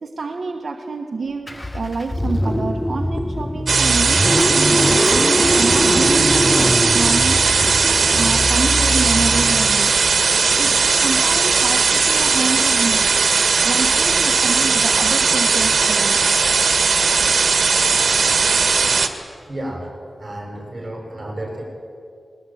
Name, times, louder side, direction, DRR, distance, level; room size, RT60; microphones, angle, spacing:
voice 1, 0.0-5.1 5.4-7.5 8.1-10.0 10.6-13.1 13.6-16.2, right 4 dB, 60° right, 3 dB, 1.3 m, -27 dB
Car / Engine starting, 1.5-10.2, left 1 dB, 10° left, 0.6 m, -22 dB
sound 1, 3.7-19.1, right 5 dB, 75° right, 1.6 m, -17 dB
voice 2, 19.5-19.9 20.2-21.6, right 1 dB, 25° right, 0 dB, 7.7 m, -31 dB
21.0 x 20.0 x 9.3 m, 2.3 s
wide cardioid pair, 120°, 0 cm